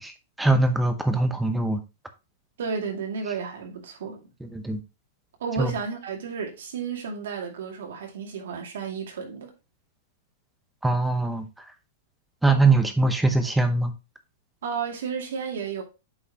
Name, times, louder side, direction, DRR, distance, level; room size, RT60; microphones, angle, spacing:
voice 1, 0.0-1.8 4.4-4.8 5.6-5.7 10.8-11.7 12.4-13.9, right 3 dB, 5° right, 0.8 m, -22 dB
voice 2, 2.6-4.3 5.4-9.5 14.6-15.8, right 6 dB, 75° right, 2.4 m, -32 dB
8.4 x 4.6 x 2.9 m
supercardioid pair, 160°, 0 cm